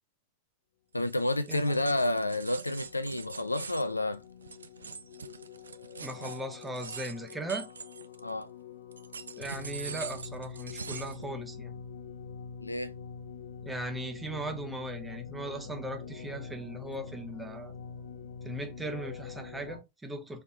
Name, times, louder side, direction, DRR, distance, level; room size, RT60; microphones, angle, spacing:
voice 1, 0.9-4.2 8.2-8.5 12.6-12.9, left 1 dB, 85° left, 0.4 m, -30 dB
sound 1, 1.0-8.4 8.9-11.3, right 6 dB, 75° right, 0.3 m, -44 dB
sound 2, 1.4-19.8, left 6 dB, 65° left, 0.8 m, -45 dB
voice 2, 1.5-1.9 6.0-7.7 9.4-11.7 13.6-17.7 18.4-20.4, right 1 dB, 10° right, 0.9 m, -38 dB
3.9 x 3.4 x 2.9 m
figure-of-eight pair, 90°, 0 cm